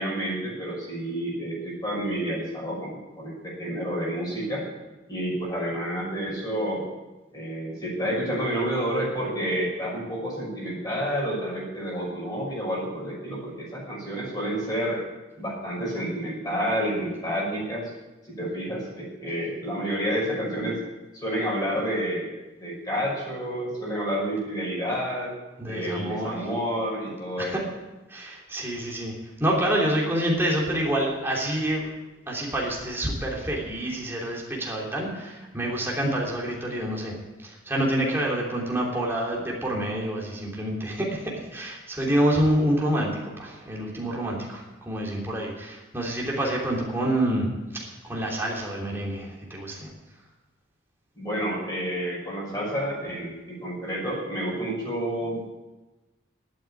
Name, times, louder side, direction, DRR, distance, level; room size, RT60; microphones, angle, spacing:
voice 1, 0.0-4.6 5.1-6.9 7.3-15.0 15.4-17.9 18.3-20.8 21.1-22.3 22.6-25.3 25.6-27.5 51.1-55.4, equal, 20° left, -4 dB, 5.4 m, -29 dB
voice 2, 25.6-26.4 27.4-27.6 28.1-31.9 32.3-49.9, right 1 dB, 10° right, -3 dB, 3.1 m, -27 dB
12.5 x 9.4 x 8.4 m, 1.1 s
head